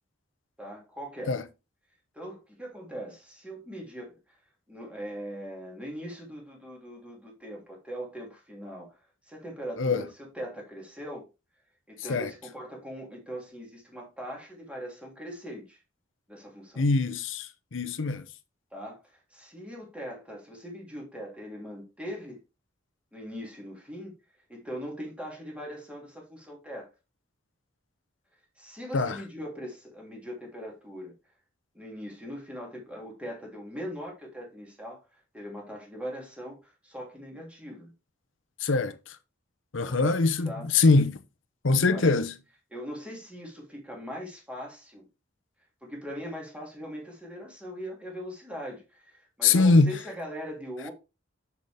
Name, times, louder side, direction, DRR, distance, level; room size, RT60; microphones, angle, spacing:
voice 1, 0.6-1.4 2.1-4.4 4.7-9.0 9.3-11.2 11.9-15.8 16.3-16.8 18.7-22.4 23.1-24.1 24.5-26.9 28.6-31.1 31.7-35.0 35.3-37.9 39.8-40.1 40.4-40.7 41.8-42.1 42.7-45.1 45.8-50.9, equal, 5° right, 2.8 m, -40 dB
voice 2, 16.8-18.3 28.9-29.2 38.6-39.2 39.7-41.2 41.6-42.3 49.4-49.9, left 3 dB, 90° left, 0.8 m, -23 dB
7.1 x 6.5 x 3.4 m
head